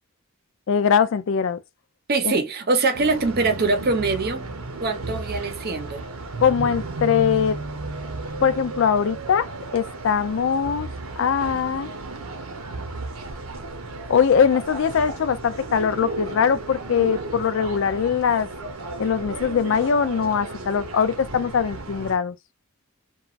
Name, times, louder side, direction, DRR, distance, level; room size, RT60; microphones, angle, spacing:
voice 1, 0.7-1.6 2.2-2.3 6.4-7.6 8.4-10.9 11.2-11.9 14.1-18.5 19.0-22.4, left 7 dB, 60° left, 0.4 m, -21 dB
voice 2, 2.1-4.5 4.8-6.0, right 3 dB, 45° right, 0.7 m, -23 dB
sound 1, 2.9-22.2, right 2 dB, 85° right, 0.8 m, -34 dB
3.0 x 2.3 x 2.4 m
head